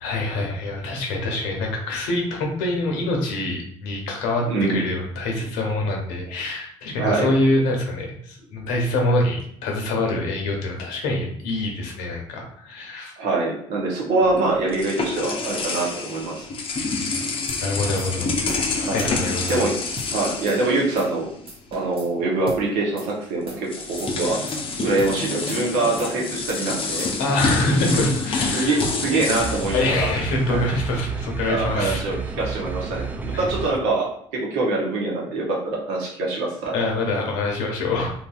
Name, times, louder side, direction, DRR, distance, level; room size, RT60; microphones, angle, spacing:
voice 1, 0.0-13.1 17.0-17.1 17.6-18.5 18.9-19.6 27.2-28.8 29.7-32.0 33.3-33.5 36.7-38.1, left 2 dB, 75° left, 0 dB, 0.8 m, -25 dB
voice 2, 4.5-4.9 7.0-7.3 13.2-16.4 18.8-19.1 19.5-19.7 20.1-21.3 21.7-27.1 28.5-30.1 30.5-30.6 31.5-36.7, right 3 dB, 75° right, -2 dB, 0.9 m, -24 dB
sound 1, 14.2-21.5 21.8-22.0 23.1-23.2 23.6-30.8, left 3 dB, 40° left, 0.6 m, -28 dB
sound 2, 17.5-17.6 18.0-18.1 18.5-18.7 19.0-19.6 20.0-20.1 20.5-20.6 21.0-21.2 21.5-22.1 22.5-22.6 23.0-23.1 23.5-23.7 24.0-24.6 25.0-25.1 25.5-25.6 26.0-26.2 26.5-27.1, right 1 dB, 40° right, 0.8 m, -39 dB
sound 3, 29.4-33.8, right 5 dB, 10° right, 0.4 m, -31 dB
3.0 x 2.5 x 2.4 m, 0.66 s
hypercardioid pair, 60°, 14 cm